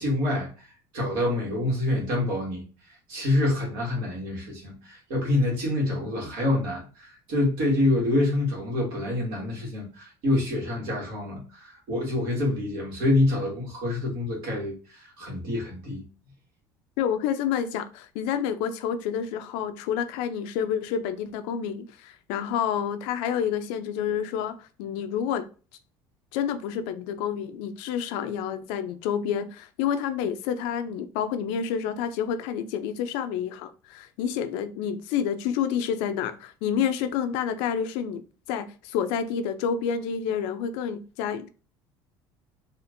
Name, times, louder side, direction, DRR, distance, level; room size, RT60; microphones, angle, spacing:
voice 1, 0.0-2.6 3.1-16.1, left 1 dB, 70° right, 1.8 m, -27 dB
voice 2, 17.0-25.5 26.3-38.2 38.5-41.5, left 8 dB, 80° left, 0.5 m, -29 dB
4.3 x 2.5 x 2.5 m
cardioid pair, 130°, 9 cm